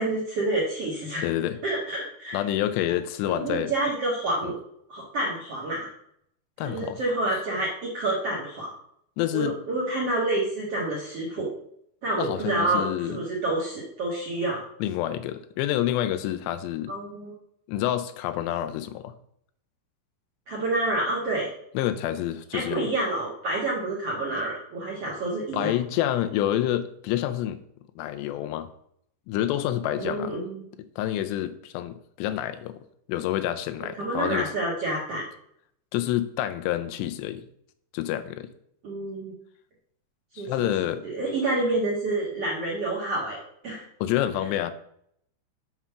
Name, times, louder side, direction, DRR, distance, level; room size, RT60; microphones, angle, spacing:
voice 1, 0.0-1.2 1.6-2.4 3.2-4.5 4.9-5.9 6.6-8.7 9.3-11.5 12.0-14.7 16.9-17.3 20.5-21.5 22.5-25.7 30.0-30.6 34.0-35.2 38.8-39.3 40.4-40.7 41.0-43.4 43.6-43.8, right 2 dB, 55° right, -4 dB, 1.8 m, -28 dB
voice 2, 1.2-1.6 2.3-3.7 4.4-4.5 6.6-7.0 9.2-9.6 12.2-13.2 14.8-16.9 17.7-19.1 21.7-22.9 25.5-27.6 28.0-28.7 29.3-30.4 31.0-32.8 33.1-34.5 35.9-37.4 37.9-38.5 40.4-41.0 44.0-44.7, left 12 dB, 85° left, 10 dB, 2.7 m, -28 dB
7.7 x 5.8 x 5.6 m, 0.70 s
omnidirectional pair, 5.0 m